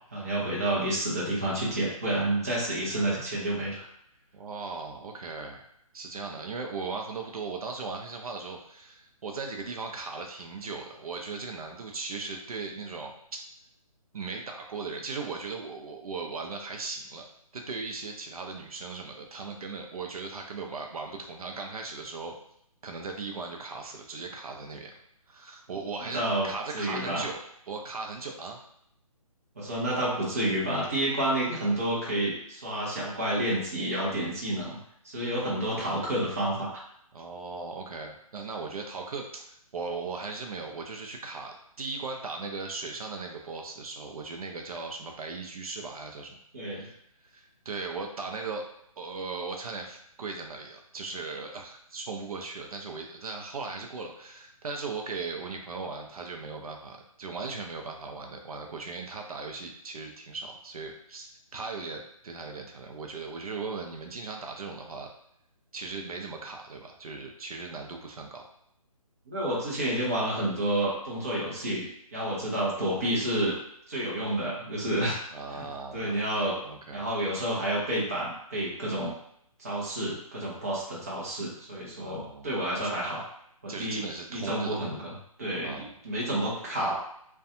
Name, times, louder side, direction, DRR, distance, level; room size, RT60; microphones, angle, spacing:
voice 1, 0.1-3.8 26.0-26.5 26.7-27.2 29.6-34.8 35.0-36.8 46.5-46.9 69.3-73.5 73.9-75.2 75.5-75.7 75.9-76.6 76.9-79.1 79.6-83.2 83.6-84.0 84.3-85.1 85.4-86.9, right 1 dB, 25° right, -6 dB, 0.6 m, -29 dB
voice 2, 4.3-5.7 5.9-13.1 14.1-17.3 17.5-22.3 22.8-24.9 25.3-27.4 27.7-28.6 37.1-46.4 46.8-47.0 47.2-48.7 49.0-65.1 65.7-68.4 75.3-76.2 76.6-77.1 82.0-82.6 83.7-84.8 85.6-85.9, right 4 dB, 75° right, 2 dB, 0.5 m, -38 dB
2.5 x 2.2 x 2.6 m, 0.72 s
hypercardioid pair, 175°, 19 cm